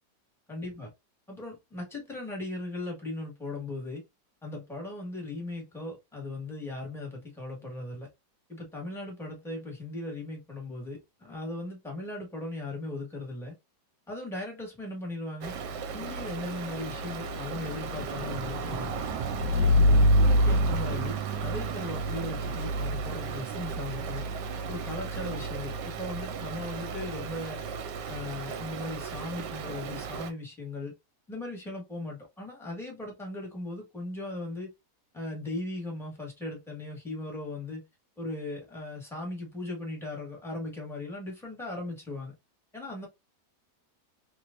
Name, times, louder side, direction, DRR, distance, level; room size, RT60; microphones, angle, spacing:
voice 1, 0.5-0.9 1.3-4.0 4.4-8.1 8.5-13.6 14.1-15.5 15.9-18.9 19.5-24.2 24.7-27.6 28.1-30.9 31.3-34.7 35.1-37.9 38.2-42.3 42.7-43.1, left 2 dB, ahead, 1.3 m, -38 dB
Stream, 15.4-30.3, right 1 dB, 80° right, 1.2 m, -29 dB
3.2 x 3.0 x 2.5 m
omnidirectional pair, 1.9 m